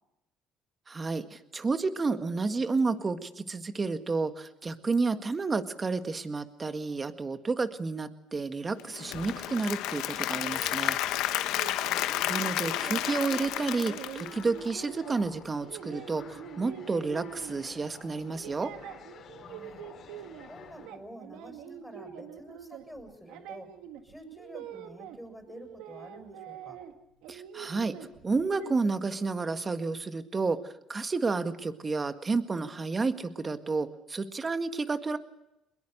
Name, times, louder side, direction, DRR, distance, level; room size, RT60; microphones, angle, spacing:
voice 1, 0.9-11.0 12.3-18.7 27.3-27.9 28.2-30.6 30.9-35.2, right 4 dB, 30° right, 9 dB, 1.8 m, -31 dB
Applause / Crowd, 8.8-14.9, left 14 dB, 80° left, 1.1 m, -31 dB
sound 1, 10.3-17.9 18.2-20.5 20.8-25.2 25.5-26.9 27.2-28.8, right 9 dB, 80° right, 1.9 m, -45 dB
sound 2, 11.1-20.9, left 7 dB, 55° left, 3.9 m, -51 dB
voice 2, 11.5-12.3 19.4-19.8 20.5-23.8 24.0-26.8, equal, ahead, 5 dB, 6.9 m, -48 dB
22.5 x 21.5 x 6.7 m, 0.86 s
supercardioid pair, 85°, 0 cm